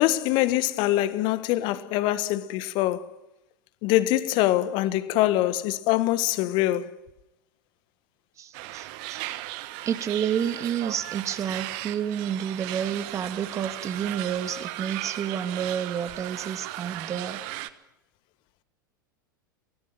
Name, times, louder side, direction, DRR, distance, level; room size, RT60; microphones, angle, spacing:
voice 1, 0.0-3.2 3.8-6.9, left 15 dB, 45° left, 1.5 m, -24 dB
voice 2, 8.4-9.2 9.9-17.4, right 8 dB, 30° right, 2.0 m, -30 dB
sound 1, 8.5-17.7, right 16 dB, 50° right, 1.4 m, -36 dB
24.5 x 18.0 x 9.2 m
figure-of-eight pair, 90°, 11 cm